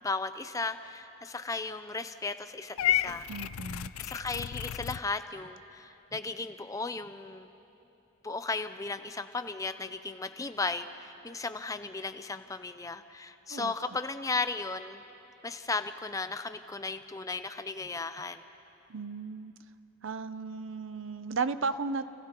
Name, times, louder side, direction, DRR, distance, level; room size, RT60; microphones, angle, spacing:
voice 1, 0.0-3.3 4.0-7.5 8.2-15.0 15.4-18.4, left 3 dB, 15° left, 10 dB, 0.5 m, -35 dB
Purr / Meow, 2.8-5.0, left 12 dB, 90° left, 0.4 m, -31 dB
voice 2, 3.3-3.9 13.5-13.7 18.9-19.5 20.0-22.0, right 4 dB, 65° right, 12 dB, 0.6 m, -34 dB
30.0 x 29.0 x 3.0 m, 3.0 s
head